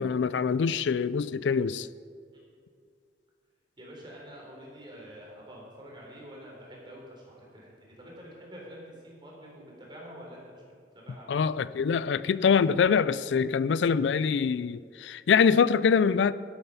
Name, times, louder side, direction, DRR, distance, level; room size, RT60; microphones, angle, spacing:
voice 1, 0.0-1.9 11.3-16.3, left 6 dB, 90° left, 0.4 m, -24 dB
voice 2, 3.8-10.6 10.9-11.4, equal, 25° right, 4.0 m, -47 dB
12.0 x 11.5 x 5.5 m
head